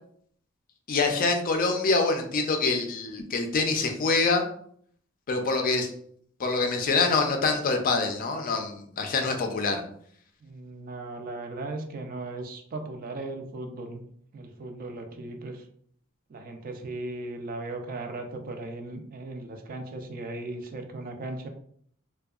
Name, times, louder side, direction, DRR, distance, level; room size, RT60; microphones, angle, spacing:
voice 1, 0.9-4.5 5.3-5.9 6.4-9.8, left 3 dB, 40° left, 4 dB, 0.4 m, -25 dB
voice 2, 10.4-14.0 14.3-15.7 16.3-21.5, right 2 dB, 40° right, 4 dB, 0.4 m, -37 dB
2.6 x 2.2 x 2.3 m, 0.62 s
head